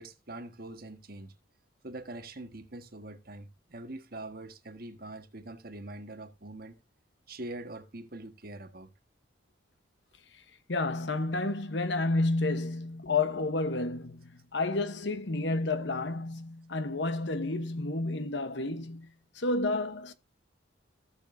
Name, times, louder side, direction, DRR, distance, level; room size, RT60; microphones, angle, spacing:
voice 1, 0.0-1.3 1.8-6.8 7.3-8.9, right 2 dB, 50° right, 1.6 m, -43 dB
voice 2, 10.7-20.1, left 2 dB, 65° left, 1.1 m, -30 dB
17.0 x 7.1 x 2.7 m
head